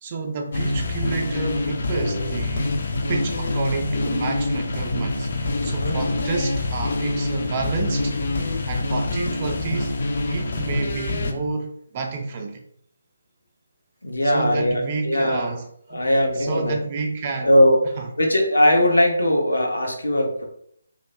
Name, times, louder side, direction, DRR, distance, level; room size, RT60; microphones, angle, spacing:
voice 1, 0.0-2.8 3.1-8.1 8.7-10.0 10.3-12.6 14.2-15.6 15.9-17.6 18.0-18.5, right 4 dB, 30° right, 3 dB, 0.4 m, -30 dB
sound 1, 0.5-11.3, left 2 dB, 50° left, 0.4 m, -25 dB
voice 2, 5.6-6.0 14.0-15.5 15.9-16.8 17.4-17.8 18.2-20.4, equal, 75° left, 1 dB, 0.7 m, -20 dB
2.5 x 2.2 x 3.1 m, 0.68 s
figure-of-eight pair, 150°, 0 cm